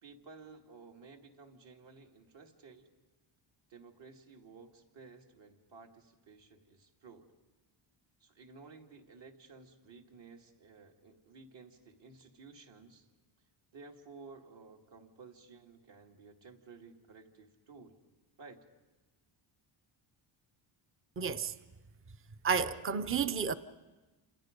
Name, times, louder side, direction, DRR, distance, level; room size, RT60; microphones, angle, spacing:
voice 1, 0.0-2.9 3.7-7.3 8.2-13.1 13.7-18.0 18.4-18.6, right 4 dB, 60° right, 2.5 m, -54 dB
voice 2, 21.2-21.5 22.4-23.5, right 6 dB, 25° right, 0.7 m, -31 dB
28.5 x 27.5 x 5.3 m
cardioid pair, 120°, 50 cm